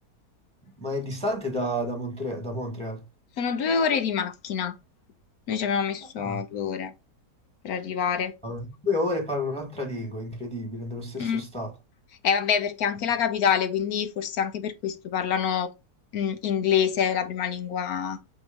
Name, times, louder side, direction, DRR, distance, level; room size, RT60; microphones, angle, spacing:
voice 1, 0.8-3.0 6.2-6.4 8.4-11.7, left 1 dB, 5° left, 1.5 m, -30 dB
voice 2, 3.4-4.7 5.5-6.9 7.6-8.3 11.2-11.5 12.2-15.7 16.1-18.2, left 7 dB, 65° left, 1.2 m, -26 dB
7.8 x 3.0 x 5.1 m
omnidirectional pair, 1.8 m